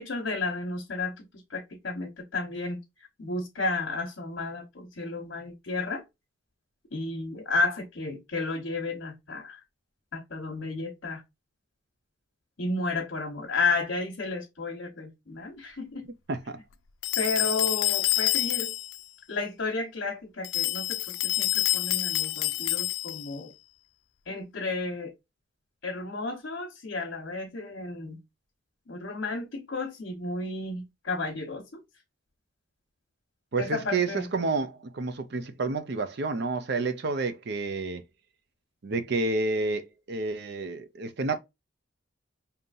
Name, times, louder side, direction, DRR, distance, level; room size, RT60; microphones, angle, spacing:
voice 1, 0.0-2.8 3.2-6.0 6.9-9.6 10.1-11.2 12.6-16.0 17.2-18.7 19.3-23.5 24.3-25.1 25.8-28.2 28.9-31.8 33.6-34.3, left 3 dB, 65° left, 1.1 m, -32 dB
voice 2, 16.1-16.6 33.5-38.0 38.8-41.4, right 3 dB, 55° right, 0.5 m, -30 dB
sound 1, 17.0-19.0 20.4-23.3, left 17 dB, 90° left, 0.4 m, -27 dB
5.3 x 2.8 x 2.5 m
head